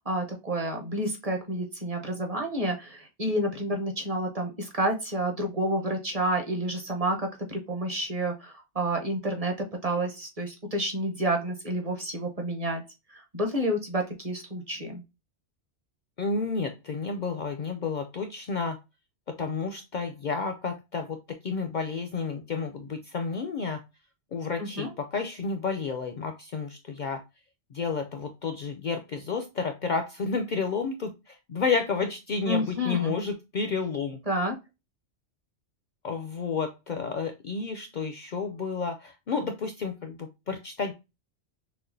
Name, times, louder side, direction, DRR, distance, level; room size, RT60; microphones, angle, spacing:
voice 1, 0.0-9.5 9.8-12.8 13.1-15.0 24.6-24.9 32.5-33.1 34.3-34.6, right 1 dB, 35° right, 3 dB, 0.9 m, -29 dB
voice 2, 16.2-18.8 19.4-21.2 21.4-23.8 24.3-27.2 27.7-34.2 36.0-40.9, left 5 dB, 55° left, 5 dB, 0.5 m, -31 dB
6.1 x 2.3 x 2.6 m, 0.25 s
omnidirectional pair, 1.1 m